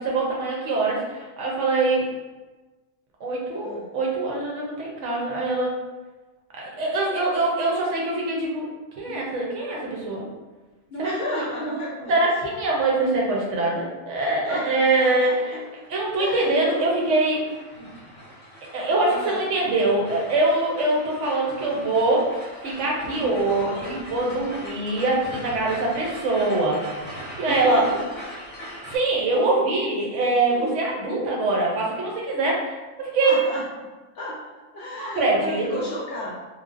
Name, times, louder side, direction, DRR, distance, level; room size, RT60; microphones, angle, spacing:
voice 1, 0.0-2.1 3.2-5.7 6.6-8.7 9.0-10.2 11.0-11.1 12.1-15.6 15.9-17.5 17.8-17.9 18.7-26.8 27.4-27.8 28.9-32.8 33.1-33.4 35.0-35.9, right 2 dB, 70° right, -3 dB, 0.9 m, -23 dB
voice 2, 10.9-12.3 14.4-14.6 15.0-15.6 16.2-16.8 19.1-19.4 23.0-24.0 24.7-24.8 27.5-28.1 29.3-29.7 30.5-30.8 33.2-33.6 34.1-34.4 34.7-36.3, left 1 dB, 65° left, -6 dB, 0.6 m, -33 dB
sound 1, 15.5-29.0, equal, 10° left, 0.5 m, -41 dB
3.2 x 2.0 x 2.4 m, 1.2 s
omnidirectional pair, 1.4 m